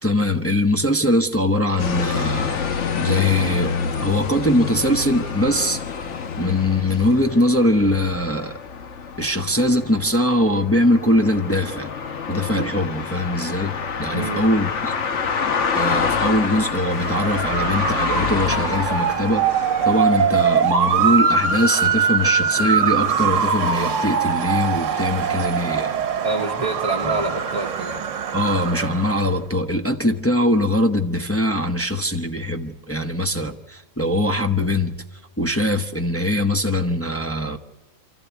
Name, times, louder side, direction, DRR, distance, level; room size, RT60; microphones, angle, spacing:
voice 1, 0.0-2.7 3.0-3.8 4.0-5.8 6.4-8.6 9.2-11.9 12.3-14.9 15.7-19.5 19.8-25.9 27.0-27.2 28.3-35.0 35.4-37.6, left 1 dB, 15° left, 0.7 m, -21 dB
sound 1, 1.8-20.5, left 5 dB, 60° left, 1.3 m, -27 dB
Motor vehicle (road) / Siren, 16.6-29.3, right 6 dB, 65° right, 1.2 m, -22 dB
voice 2, 26.2-28.0, right 3 dB, 25° right, 1.0 m, -26 dB
28.0 x 14.0 x 8.3 m
omnidirectional pair, 1.5 m